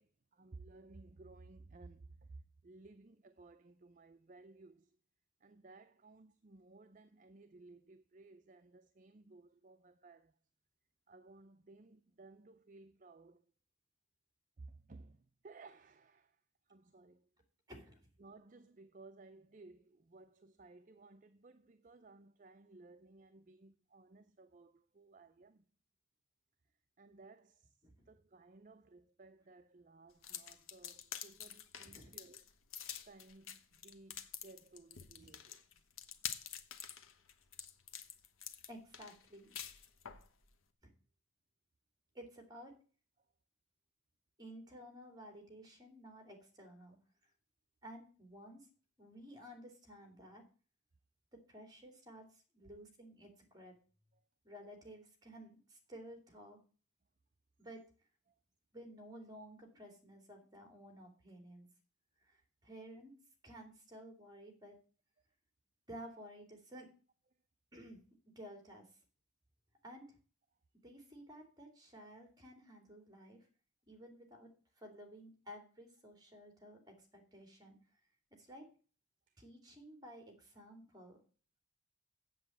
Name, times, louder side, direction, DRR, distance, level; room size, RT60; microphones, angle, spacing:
voice 1, 0.0-5.0 5.4-10.4 11.1-13.5 14.6-17.3 18.2-25.7 26.7-32.5 33.0-35.9 43.2-43.3 54.1-54.3 58.3-58.4 79.3-79.4, right 3 dB, 40° right, 0.5 m, -58 dB
voice 2, 17.7-18.0 27.8-28.1 31.9-32.1 35.1-35.4 38.7-39.6 40.8-40.9 42.1-42.7 44.4-47.3 47.8-48.7 49.0-50.4 51.5-53.7 54.4-56.6 57.6-57.8 58.7-61.7 62.2-63.1 63.4-64.7 65.9-66.9 67.7-69.0 69.8-70.2 70.8-73.5 73.9-74.5 74.8-78.0 78.3-78.7 79.4-81.2, equal, 20° right, 2.9 m, -54 dB
sound 1, 30.2-40.3, left 9 dB, 75° left, 1.1 m, -47 dB
7.8 x 7.8 x 7.2 m
head